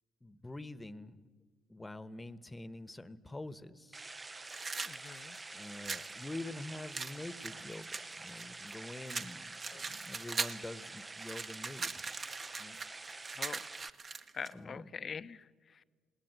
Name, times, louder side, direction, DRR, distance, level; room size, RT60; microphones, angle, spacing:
voice 1, 0.2-1.3 1.7-4.1 5.5-12.1 12.6-12.8 14.5-14.9, left 2 dB, 15° left, 16 dB, 1.1 m, -46 dB
sound 1, 3.9-13.9, right 3 dB, 25° right, 0.6 m, -47 dB
sound 2, 4.5-6.1 6.9-8.7 9.1-10.7 11.0-14.5, right 4 dB, 45° right, 1.4 m, -40 dB
voice 2, 4.8-5.4 9.7-9.9 13.3-13.7 14.3-15.8, left 6 dB, 45° left, 15 dB, 0.8 m, -44 dB
20.0 x 19.0 x 9.1 m, 1.5 s
supercardioid pair, 60°, 0 cm